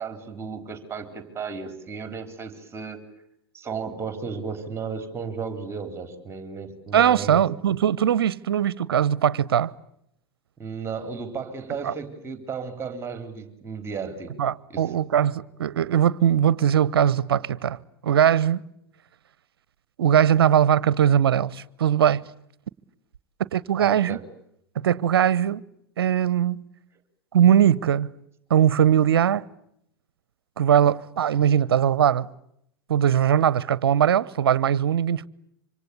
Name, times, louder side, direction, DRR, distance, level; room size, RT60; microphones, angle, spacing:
voice 1, 0.0-3.1 3.5-7.4 10.6-14.4 14.7-15.0 23.8-24.2, right 5 dB, 20° right, 4.0 m, -34 dB
voice 2, 6.9-9.7 11.8-11.9 14.4-17.8 18.0-18.6 20.0-22.2 23.5-24.2 24.7-25.6 26.0-26.6 27.3-28.1 28.5-29.5 30.6-32.3 32.9-35.3, right 9 dB, 70° right, 1.0 m, -20 dB
26.5 x 25.5 x 8.4 m
figure-of-eight pair, 95°, 13 cm